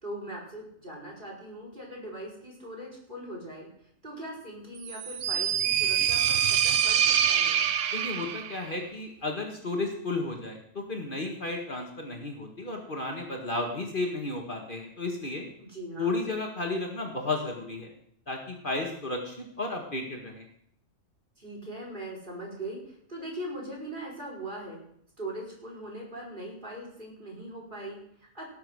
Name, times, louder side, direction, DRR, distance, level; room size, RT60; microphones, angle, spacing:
voice 1, 0.0-7.7 15.6-16.2 21.4-24.8 25.2-28.5, right 1 dB, 40° right, -3 dB, 4.9 m, -40 dB
sound 1, 4.8-8.6, right 9 dB, 70° right, 1.1 m, -25 dB
voice 2, 7.9-15.4 16.0-17.9 18.3-20.5, left 2 dB, 40° left, 2 dB, 1.9 m, -33 dB
17.5 x 7.1 x 6.4 m, 0.69 s
omnidirectional pair, 1.4 m